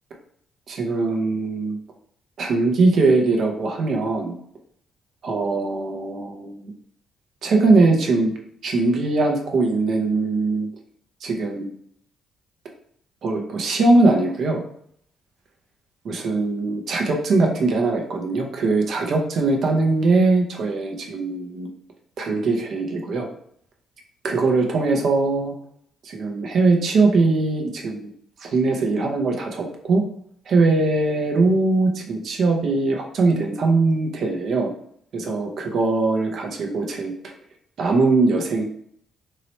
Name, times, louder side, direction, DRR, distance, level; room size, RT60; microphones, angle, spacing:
voice 1, 0.7-1.8 2.4-4.4 5.2-6.7 7.4-8.3 8.6-10.7 11.2-11.7 13.2-14.6 16.1-21.7 22.2-23.3 24.2-25.5 26.0-28.1 28.4-30.0 30.5-34.7 35.1-37.3 37.8-38.6, right 3 dB, 60° right, 1 dB, 0.7 m, -21 dB
3.1 x 2.8 x 2.8 m, 0.66 s
cardioid pair, 90°, 0 cm